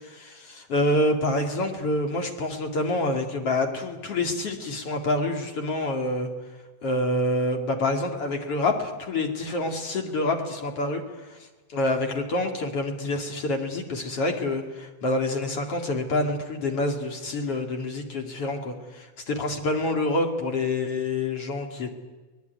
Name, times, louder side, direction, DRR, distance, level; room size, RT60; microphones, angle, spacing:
voice 1, 0.1-6.3 6.8-11.0 11.7-21.9, left 2 dB, 50° left, 4 dB, 3.1 m, -27 dB
23.5 x 20.0 x 9.4 m, 1.2 s
omnidirectional pair, 3.6 m